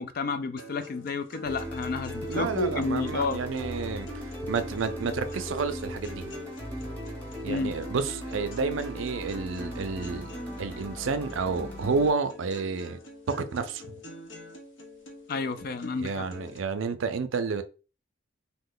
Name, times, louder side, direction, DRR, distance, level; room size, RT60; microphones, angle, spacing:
voice 1, 0.0-3.4 7.5-7.7 15.3-16.3, left 3 dB, 45° left, 0.3 m, -31 dB
sound 1, 0.6-16.6, left 2 dB, 70° left, 0.7 m, -46 dB
sound 2, 1.4-12.1, equal, 10° left, 0.9 m, -38 dB
voice 2, 2.3-6.3 7.4-10.3 10.6-13.0 13.3-13.8 16.0-17.6, right 4 dB, 75° right, 0.4 m, -30 dB
3.0 x 2.1 x 3.7 m
head